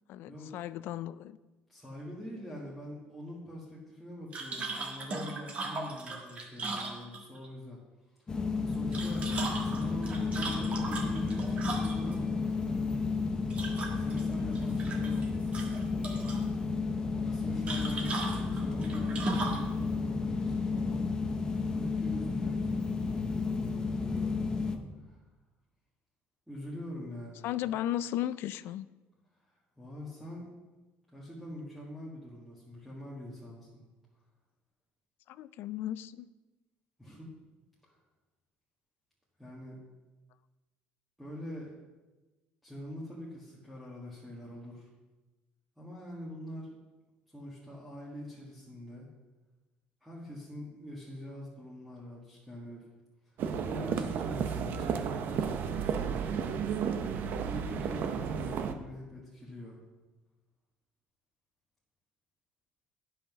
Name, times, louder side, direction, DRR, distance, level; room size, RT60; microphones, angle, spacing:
voice 1, 0.1-1.4 27.4-28.9 35.3-36.3, left 12 dB, 65° left, 16 dB, 0.3 m, -35 dB
voice 2, 1.7-7.8 8.0-13.0 13.9-15.7 17.1-21.0 21.7-25.2 26.5-27.5 29.4-30.5 31.1-33.8 37.0-37.3 37.8-38.0 39.4-39.7 41.2-41.7 42.6-44.9 45.8-46.8 47.3-49.1 50.0-52.8 53.2-53.4 53.6-56.8 57.4-59.8, left 1 dB, ahead, -7 dB, 1.6 m, -44 dB
sound 1, 4.3-7.5 8.7-12.2 13.5-14.2 14.6-15.3 15.5-16.4 17.7-19.7, right 3 dB, 30° right, 1.6 m, -37 dB
sound 2, 8.3-24.8, left 4 dB, 20° left, 0.7 m, -32 dB
sound 3, 53.4-58.7, right 7 dB, 50° right, 0.7 m, -33 dB
10.0 x 5.7 x 6.1 m, 1.2 s
cardioid pair, 165°, 4 cm